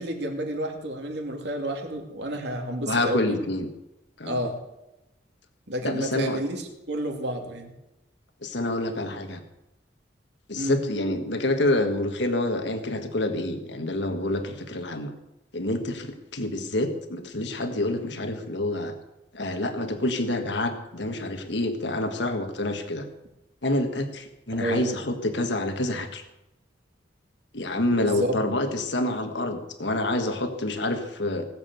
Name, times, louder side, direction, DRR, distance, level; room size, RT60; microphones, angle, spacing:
voice 1, 0.0-3.4 4.2-4.6 5.7-7.7 10.6-10.8 24.6-24.9 27.9-28.3, right 1 dB, 60° right, 3 dB, 2.6 m, -30 dB
voice 2, 2.9-3.7 4.2-4.4 5.8-6.4 8.4-9.4 10.5-15.1 15.5-18.9 19.3-23.1 23.6-26.2 27.5-31.5, left 1 dB, 65° left, 6 dB, 1.5 m, -27 dB
19.0 x 7.6 x 7.9 m, 0.93 s
head